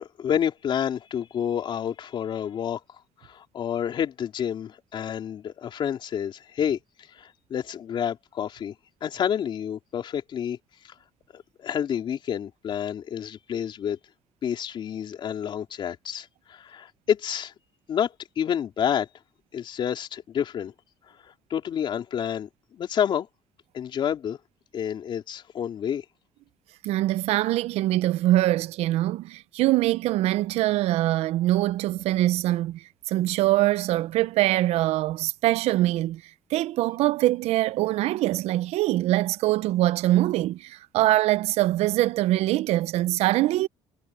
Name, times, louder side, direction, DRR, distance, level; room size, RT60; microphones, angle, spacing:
voice 1, 0.0-2.8 3.2-6.8 7.1-8.7 9.0-10.6 10.8-10.9 11.3-14.0 14.4-17.5 17.9-19.1 19.5-20.7 21.2-23.3 23.7-24.4 24.7-26.0, left 9 dB, 50° left, 3.7 m, -29 dB
voice 2, 26.8-36.2 36.5-43.7, right 16 dB, 75° right, 0.5 m, -23 dB
cardioid pair, 135°, 11 cm